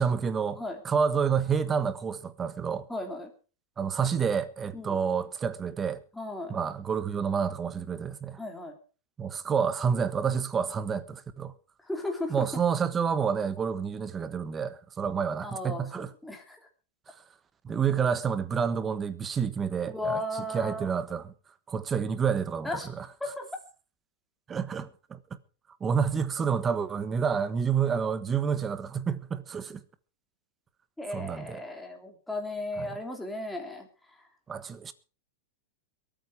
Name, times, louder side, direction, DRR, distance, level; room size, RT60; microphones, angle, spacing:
voice 1, 0.0-0.6 0.8-2.9 3.8-6.0 6.5-8.4 9.2-11.5 12.3-16.1 17.6-20.2 20.5-21.3 21.7-23.1 24.5-25.2 25.8-29.8 31.1-31.6 32.8-33.0 34.5-34.9, right 6 dB, 20° right, 1.2 m, -29 dB
voice 2, 2.9-3.3 4.7-5.0 6.1-6.5 8.4-8.7 11.8-12.5 15.4-16.6 19.9-20.9 22.6-22.9 23.2-23.5 31.0-34.2, left 1 dB, 5° left, 3.2 m, -35 dB
22.5 x 9.1 x 4.8 m
supercardioid pair, 145°, 0 cm